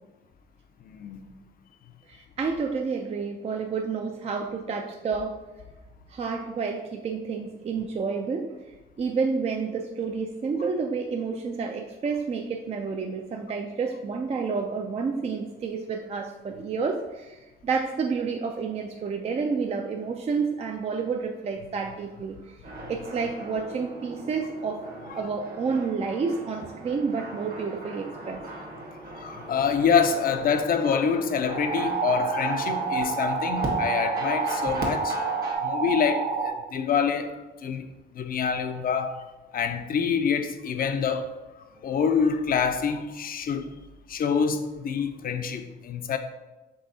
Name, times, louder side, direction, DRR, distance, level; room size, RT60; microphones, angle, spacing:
voice 1, 0.9-1.2 29.2-35.2 35.6-37.9 38.1-39.2 39.5-41.3 41.8-43.7 44.1-46.2, left 6 dB, 45° left, 8 dB, 0.5 m, -26 dB
voice 2, 2.1-5.4 6.1-8.6 9.0-22.6 22.9-28.4, right 5 dB, 30° right, 2 dB, 0.4 m, -30 dB
sound 1, 22.6-35.6, right 1 dB, 50° right, 1.1 m, -38 dB
sound 2, 31.5-36.5, right 5 dB, 75° right, 1.5 m, -28 dB
5.4 x 3.4 x 2.7 m, 1.1 s
cardioid pair, 90°, 20 cm